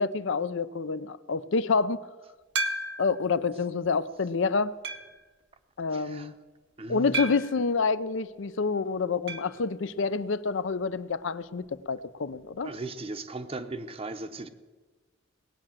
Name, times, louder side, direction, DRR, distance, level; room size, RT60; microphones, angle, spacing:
voice 1, 0.0-2.0 3.0-4.7 5.8-6.3 6.9-12.7, left 4 dB, 70° left, 15 dB, 0.5 m, -28 dB
sound 1, 2.6-3.2 3.9-4.0 4.8-5.2 7.1-7.6 9.3-9.6 9.8-9.9 10.2-10.3 12.3-12.4, right 2 dB, 55° right, 0.9 m, -32 dB
voice 2, 5.9-6.3 6.8-7.3 12.6-14.5, right 2 dB, 30° right, 10 dB, 0.8 m, -38 dB
18.5 x 8.8 x 7.4 m, 1.3 s
head